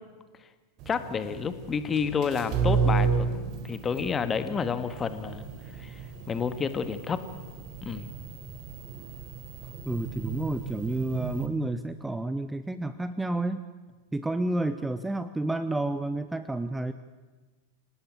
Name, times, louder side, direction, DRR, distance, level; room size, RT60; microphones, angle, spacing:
sound 1, 0.8-11.5, right 5 dB, 40° right, 3.9 m, -32 dB
voice 1, 0.9-5.5 5.8-5.9 6.3-7.2 7.8-8.1, left 6 dB, 20° left, 11 dB, 1.9 m, -30 dB
voice 2, 9.9-13.6 14.1-16.9, right 2 dB, 5° right, 12 dB, 0.9 m, -30 dB
28.5 x 18.5 x 8.7 m, 1.3 s
figure-of-eight pair, 90°, 0 cm